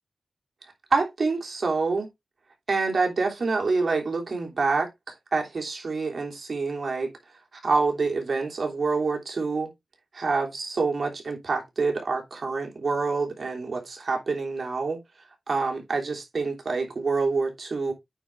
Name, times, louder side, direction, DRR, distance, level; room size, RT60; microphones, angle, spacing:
voice 1, 0.9-2.1 2.7-4.9 5.3-7.1 7.6-9.7 10.1-15.0 15.5-17.9, right 4 dB, 60° right, 3.1 m, -26 dB
9.1 x 4.7 x 3.7 m
wide cardioid pair, 75°, 0 cm